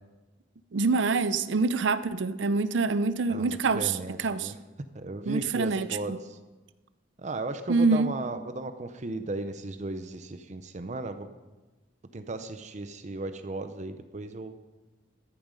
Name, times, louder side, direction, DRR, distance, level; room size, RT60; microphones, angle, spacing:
voice 1, 0.7-3.9 4.2-4.5 5.3-6.2 7.7-8.1, right 3 dB, 80° right, 14 dB, 0.6 m, -25 dB
voice 2, 3.3-4.6 4.9-6.4 7.2-11.3 12.1-14.5, right 2 dB, 40° right, 10 dB, 0.6 m, -36 dB
14.0 x 9.3 x 5.3 m, 1.2 s
head